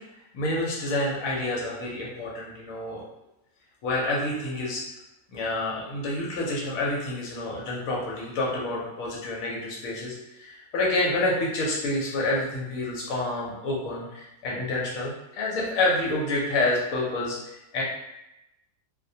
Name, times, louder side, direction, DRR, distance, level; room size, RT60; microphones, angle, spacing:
voice 1, 0.3-3.0 3.8-4.8 5.3-17.8, left 2 dB, 80° left, -4 dB, 1.0 m, -28 dB
2.3 x 2.1 x 2.6 m, 0.90 s
omnidirectional pair, 1.4 m